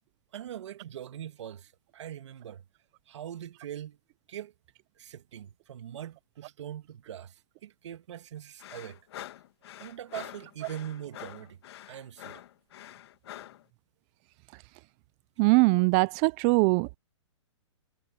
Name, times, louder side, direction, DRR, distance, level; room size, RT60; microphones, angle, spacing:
voice 1, 0.3-2.6 3.1-4.0 4.3-4.5 5.0-9.0 9.8-11.6 11.8-12.4, right 10 dB, 65° right, 2.5 m, -42 dB
sound 1, 8.6-13.6, left 13 dB, 55° left, 2.3 m, -46 dB
voice 2, 15.4-17.0, right 27 dB, 25° right, 0.5 m, -22 dB
hypercardioid pair, 150°, 16 cm